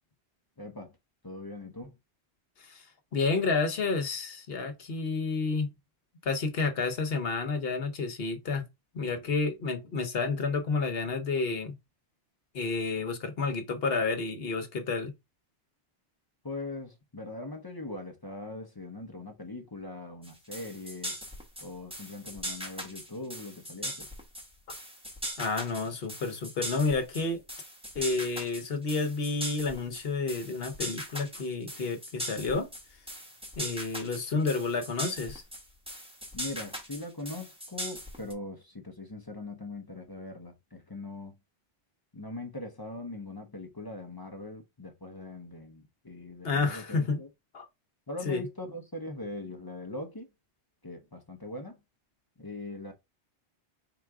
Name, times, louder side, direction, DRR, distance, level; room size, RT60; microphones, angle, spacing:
voice 1, 0.6-0.9 1.2-2.0 16.4-21.2 21.6-24.1 36.3-41.4 42.1-47.3 48.1-50.3 50.8-51.8 52.4-52.9, left 2 dB, 25° left, 0.7 m, -41 dB
voice 2, 3.1-5.7 6.2-8.7 8.9-11.8 12.5-15.1 25.4-27.4 27.9-32.7 33.6-35.4 46.4-47.2 47.5-47.7 48.2-48.5, left 4 dB, 60° left, 1.0 m, -30 dB
sound 1, 20.2-38.3, equal, 5° right, 1.0 m, -39 dB
3.9 x 2.4 x 4.6 m
omnidirectional pair, 1.2 m